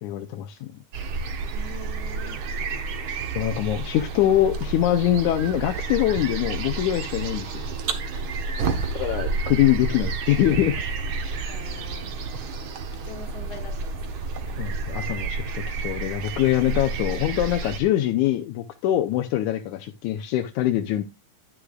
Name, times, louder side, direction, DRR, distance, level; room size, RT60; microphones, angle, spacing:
voice 1, 0.0-0.7 3.3-7.5 9.0-10.8 14.6-21.0, left 12 dB, 75° left, 5 dB, 2.0 m, -23 dB
sound 1, 0.9-17.8, right 4 dB, 60° right, 1.4 m, -30 dB
voice 2, 1.5-2.4 8.6-8.8 11.5-12.1 13.0-14.2, left 5 dB, 35° left, 4 dB, 2.0 m, -43 dB
10.5 x 9.8 x 2.4 m, 0.24 s
omnidirectional pair, 3.7 m